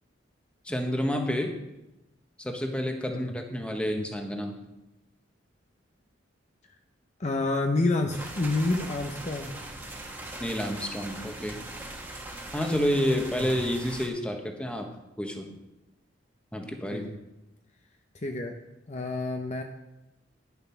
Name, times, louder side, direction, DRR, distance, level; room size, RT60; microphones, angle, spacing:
voice 1, 0.6-1.5 2.4-4.6 10.4-11.6 12.5-14.8 15.2-15.5 16.5-17.1, equal, 5° left, 3 dB, 1.2 m, -29 dB
voice 2, 7.2-9.5 13.4-13.6 16.6-17.2 18.2-18.5 18.9-19.6, left 2 dB, 35° left, 4 dB, 0.7 m, -29 dB
sound 1, 8.1-14.1, right 1 dB, 10° right, 1.5 m, -40 dB
11.0 x 7.0 x 5.8 m, 0.95 s
head